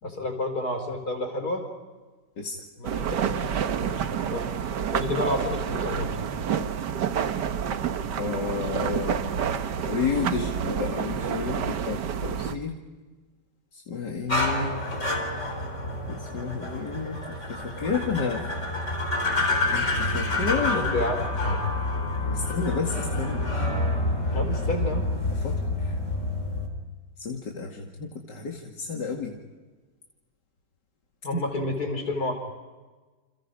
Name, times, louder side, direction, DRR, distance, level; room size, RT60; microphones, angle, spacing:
voice 1, 0.0-1.7 2.8-3.5 3.8-4.5 4.9-6.3 20.5-21.6 24.3-25.1 31.2-32.4, left 2 dB, 60° left, 5 dB, 4.9 m, -30 dB
sound 1, 2.8-12.6, right 8 dB, 75° right, 1.7 m, -29 dB
voice 2, 8.2-9.3 9.8-12.8 13.7-14.8 16.1-18.5 19.7-21.0 22.3-23.5 25.4-26.0 27.2-29.4, left 5 dB, 75° left, 0 dB, 2.9 m, -31 dB
sound 2, 14.3-26.7, left 2 dB, 40° left, 4.3 m, -28 dB
29.5 x 28.5 x 5.1 m, 1.3 s
omnidirectional pair, 1.9 m